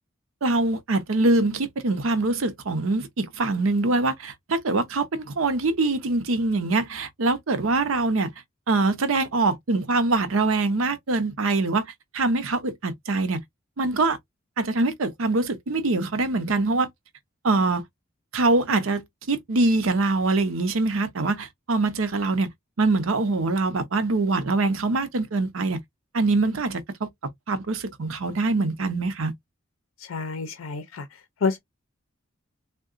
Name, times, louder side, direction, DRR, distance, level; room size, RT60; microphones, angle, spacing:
voice 1, 0.4-8.3 8.7-11.9 12.1-13.4 13.8-14.2 14.6-16.9 17.4-17.8 18.3-22.5 22.8-25.8 26.1-27.1 27.5-29.3, right 3 dB, 90° right, 0.7 m, -24 dB
voice 2, 30.0-31.6, left 4 dB, 90° left, 0.5 m, -29 dB
3.6 x 2.2 x 2.4 m
head